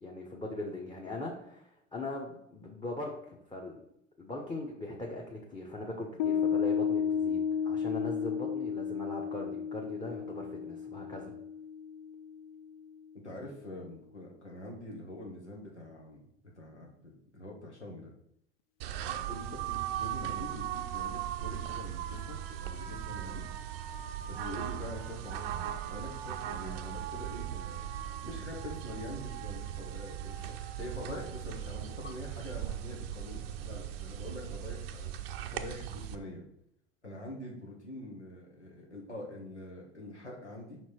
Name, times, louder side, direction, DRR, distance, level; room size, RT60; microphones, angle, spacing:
voice 1, 0.0-3.8 4.2-11.3, left 2 dB, 15° left, 0 dB, 1.1 m, -40 dB
Piano, 6.2-13.0, left 7 dB, 50° left, 0.5 m, -33 dB
voice 2, 13.2-16.2 16.5-18.1 19.0-23.4 24.2-27.8 28.2-36.4 37.0-40.8, left 1 dB, 85° left, -1 dB, 1.5 m, -45 dB
sound 1, 18.8-36.1, right 11 dB, 60° right, 0.6 m, -38 dB
5.6 x 4.6 x 4.4 m, 0.75 s
figure-of-eight pair, 75°, 34 cm